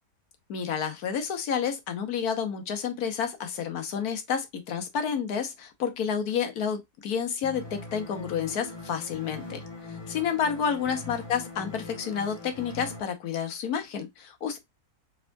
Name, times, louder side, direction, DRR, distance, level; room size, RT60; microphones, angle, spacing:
voice 1, 0.5-9.6 10.1-14.6, left 7 dB, 70° left, 1.3 m, -30 dB
sound 1, 7.4-13.0, left 3 dB, 25° left, 0.6 m, -41 dB
4.7 x 3.7 x 2.2 m
omnidirectional pair, 1.7 m